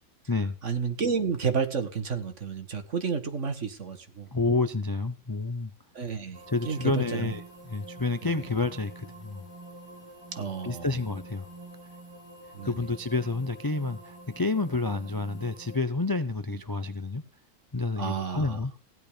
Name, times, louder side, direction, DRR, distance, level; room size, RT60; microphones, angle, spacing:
voice 1, 0.6-4.3 6.0-7.4 8.2-8.4 10.4-10.9 12.5-12.7 16.5-16.6 18.0-18.6, right 6 dB, 50° right, 1.9 m, -31 dB
voice 2, 4.3-5.7 6.5-9.4 10.6-11.5 12.6-17.2 17.7-18.7, left 3 dB, 30° left, 0.4 m, -29 dB
sound 1, 6.3-15.8, right 2 dB, 15° right, 3.7 m, -47 dB
16.0 x 11.0 x 5.1 m
omnidirectional pair, 1.6 m